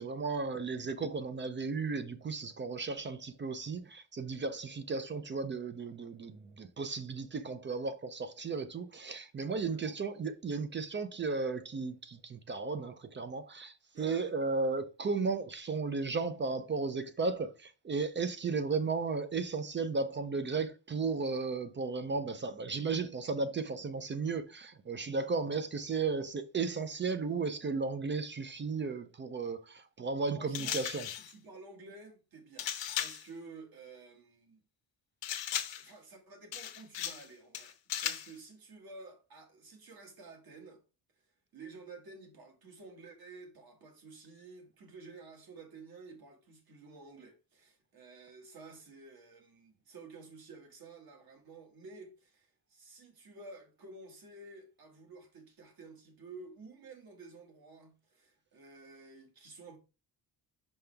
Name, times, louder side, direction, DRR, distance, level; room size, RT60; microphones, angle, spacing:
voice 1, 0.0-31.1, right 4 dB, 30° right, 0.4 m, -35 dB
voice 2, 9.5-10.0 13.9-14.3 30.4-34.6 35.7-37.8 38.0-40.8 41.5-59.8, right 3 dB, 55° right, 1.9 m, -52 dB
sound 1, 30.5-31.3 32.6-33.3 35.2-35.9 36.5-37.3 37.5-38.3, left 10 dB, 80° left, 0.9 m, -37 dB
5.6 x 5.4 x 3.3 m
wide cardioid pair, 170°, 43 cm